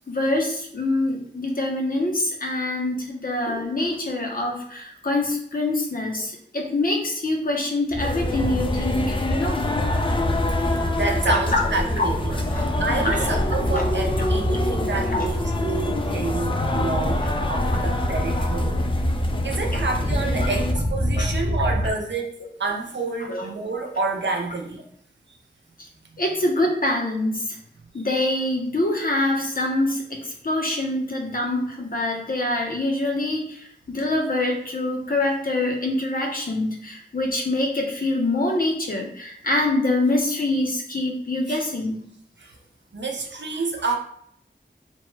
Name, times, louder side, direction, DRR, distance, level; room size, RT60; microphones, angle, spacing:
voice 1, 0.1-9.7 11.3-11.6 12.0-12.7 13.0-13.3 13.7-13.8 14.2-14.3 14.9-15.3 17.2-17.3 17.7-17.8 18.3-18.4 21.2-21.3 21.8-21.9 23.3-23.5 26.2-27.6 27.9-42.0, left 2 dB, 50° left, 0 dB, 0.7 m, -25 dB
sound 1, 7.9-21.9, equal, 25° right, 1.0 m, -26 dB
sound 2, 8.0-20.7, left 2 dB, 30° left, 0.3 m, -28 dB
voice 2, 10.6-18.8 19.4-22.3 22.6-24.8 41.5-41.6 42.4-42.6 42.9-43.9, right 3 dB, 75° right, 1 dB, 0.6 m, -29 dB
3.0 x 2.1 x 3.1 m, 0.67 s
wide cardioid pair, 75°, 19 cm